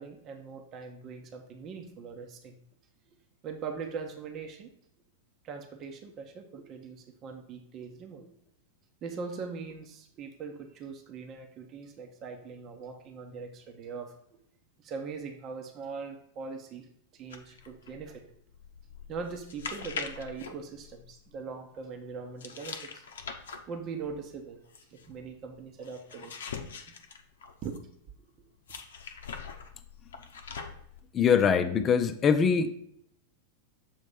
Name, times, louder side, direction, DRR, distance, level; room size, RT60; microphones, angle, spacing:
voice 1, 0.0-2.6 3.4-4.7 5.4-8.3 9.0-14.4 14.8-16.9 17.1-18.4 19.1-23.0 23.7-24.6 24.9-26.3 26.9-27.0 27.6-27.8, right 5 dB, 40° right, 4 dB, 0.9 m, -41 dB
sound 1, 17.3-21.4 22.4-28.0 28.7-31.0, left 6 dB, 75° left, 0.8 m, -43 dB
voice 2, 31.1-32.8, left 6 dB, 30° left, 9 dB, 0.6 m, -23 dB
7.2 x 3.1 x 5.3 m, 0.70 s
hypercardioid pair, 95°, 0 cm